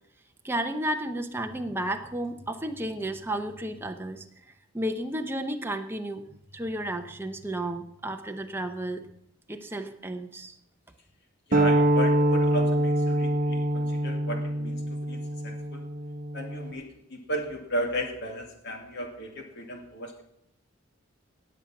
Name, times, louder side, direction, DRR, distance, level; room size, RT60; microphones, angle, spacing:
voice 1, 0.4-4.3 4.7-6.2 6.5-9.0 9.5-10.5, right 1 dB, 10° right, 4 dB, 0.8 m, -32 dB
voice 2, 11.5-15.8 16.3-20.2, equal, 55° left, 3 dB, 2.4 m, -35 dB
sound 1, 11.5-16.7, right 1 dB, 40° right, 1.0 m, -25 dB
18.5 x 7.4 x 5.9 m, 0.80 s
head